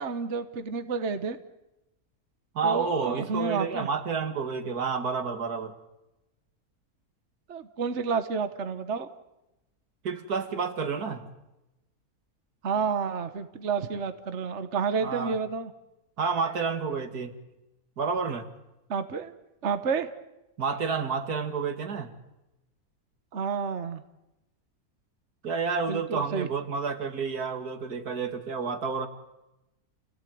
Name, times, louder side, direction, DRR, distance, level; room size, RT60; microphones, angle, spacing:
voice 1, 0.0-1.4 2.6-3.9 7.5-9.1 12.6-15.7 18.9-19.3 19.6-20.1 23.3-24.0 25.9-26.5, right 5 dB, 50° right, 10 dB, 1.5 m, -30 dB
voice 2, 2.5-5.7 10.0-11.2 15.0-15.4 16.2-17.4 18.0-18.5 20.6-22.1 25.4-29.1, right 5 dB, 80° right, 8 dB, 2.5 m, -30 dB
29.0 x 17.5 x 9.4 m, 0.95 s
omnidirectional pair, 1.6 m